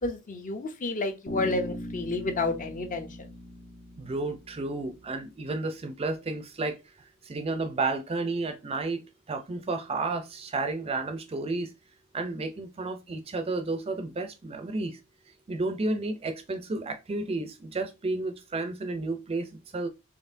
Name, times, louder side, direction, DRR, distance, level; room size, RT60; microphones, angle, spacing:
voice 1, 0.0-3.3, left 2 dB, 40° left, 0.6 m, -30 dB
Bass guitar, 1.3-5.1, left 1 dB, 75° left, 1.7 m, -40 dB
voice 2, 4.0-6.8 7.2-11.7 12.1-15.0 15.5-19.9, right 3 dB, 25° right, 0.4 m, -32 dB
4.1 x 2.9 x 2.6 m
head